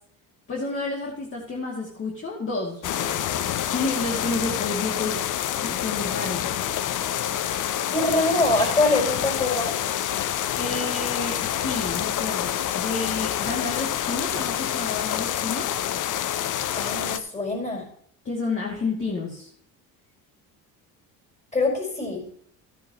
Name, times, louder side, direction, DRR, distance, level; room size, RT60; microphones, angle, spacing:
voice 1, 0.5-3.2 3.7-5.2 5.6-6.4 10.6-15.8 18.2-19.5, left 3 dB, 35° left, -3 dB, 2.5 m, -30 dB
sound 1, 2.8-17.2, left 11 dB, 55° left, 0.8 m, -27 dB
voice 2, 7.9-9.8 16.8-17.9 21.5-22.2, left 2 dB, 20° left, -1 dB, 5.0 m, -24 dB
12.5 x 10.0 x 3.0 m, 0.63 s
cardioid pair, 115°, 38 cm